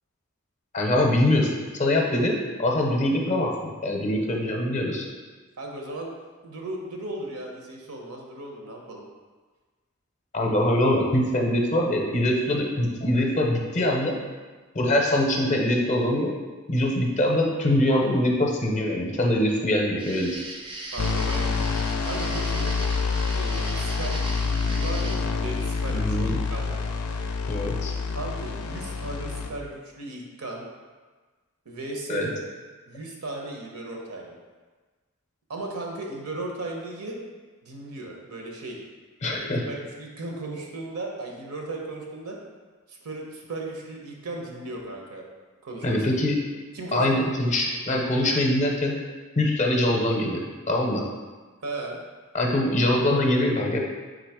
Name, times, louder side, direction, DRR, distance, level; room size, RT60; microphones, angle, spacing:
voice 1, 0.7-2.3 2.6-5.0 10.3-14.2 14.7-16.3 16.7-20.4 25.9-26.4 27.5-27.9 32.1-32.3 39.2-39.7 45.8-46.3 46.9-49.0 49.4-51.0 52.3-53.8, left 1 dB, 35° left, 0 dB, 0.5 m, -23 dB
voice 2, 5.6-6.1 6.4-9.0 20.9-21.6 22.0-22.7 23.3-26.8 28.1-30.6 31.6-32.3 32.9-34.3 35.5-37.2 37.6-38.8 39.3-42.3 42.9-45.2 45.6-46.1 46.7-47.2 51.6-52.0, right 2 dB, 80° right, 0 dB, 0.8 m, -36 dB
sound 1, 20.0-25.2, right 2 dB, 25° right, 0.4 m, -38 dB
sound 2, 21.0-29.5, left 4 dB, 80° left, 0.4 m, -27 dB
3.8 x 2.8 x 4.7 m, 1.4 s
head